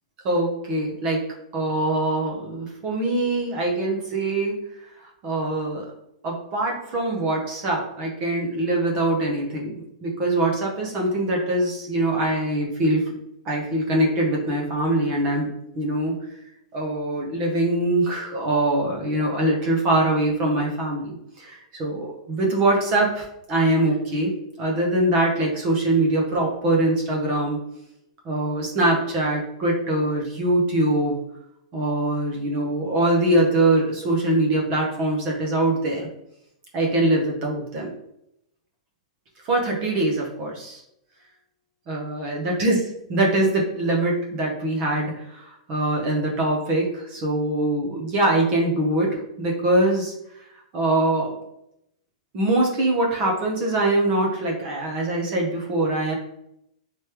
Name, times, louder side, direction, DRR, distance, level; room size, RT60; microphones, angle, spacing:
voice 1, 0.2-4.6 5.2-5.9 6.2-13.1 13.5-15.5 15.7-16.2 16.7-27.6 28.2-31.2 31.7-36.1 36.7-37.9 39.5-40.8 41.9-50.1 50.7-51.3 52.3-56.1, right 1 dB, 25° right, -1 dB, 0.8 m, -23 dB
3.3 x 3.1 x 3.0 m, 0.78 s
supercardioid pair, 175°, 4 cm